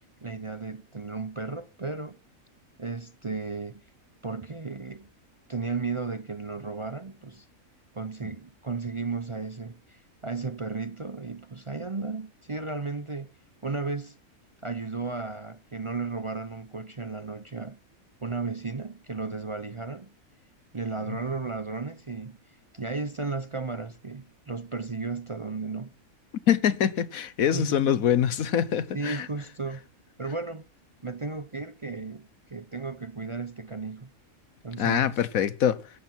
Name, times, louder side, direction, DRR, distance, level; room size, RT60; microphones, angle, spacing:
voice 1, 0.2-2.2 2.8-3.8 4.2-5.1 5.5-7.5 7.9-13.3 13.6-14.1 14.6-17.8 18.2-20.1 20.7-22.4 22.7-25.9 27.5-27.9 28.9-29.8 30.2-30.6 31.0-34.1 34.6-35.2, right 4 dB, 30° right, 0.6 m, -34 dB
voice 2, 26.5-29.3 34.8-35.8, left 9 dB, 90° left, 1.4 m, -24 dB
16.5 x 13.5 x 4.5 m
omnidirectional pair, 1.4 m